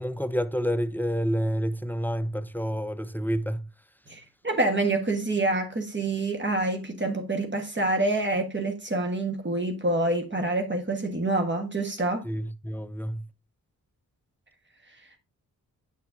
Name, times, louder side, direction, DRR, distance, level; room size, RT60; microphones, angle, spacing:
voice 1, 0.0-3.7 12.2-13.3, equal, 5° left, 0.5 m, -29 dB
voice 2, 4.1-12.2, right 2 dB, 30° right, 1.4 m, -27 dB
8.5 x 5.7 x 2.6 m
supercardioid pair, 45°, 38 cm